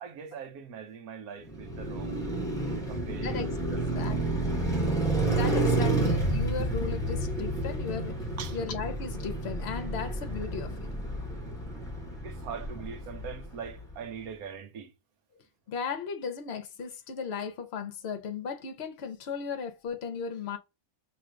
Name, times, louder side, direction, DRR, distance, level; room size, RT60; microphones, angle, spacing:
voice 1, 0.0-2.5 2.9-3.4 3.7-3.8 8.4-8.6 12.2-14.9, right 6 dB, 85° right, 1.2 m, -42 dB
Car passing by, 1.4-13.7, right 2 dB, 5° left, 0.9 m, -30 dB
voice 2, 5.4-10.9 15.7-20.6, left 6 dB, 55° left, 0.9 m, -36 dB
3.1 x 2.4 x 4.4 m
omnidirectional pair, 1.5 m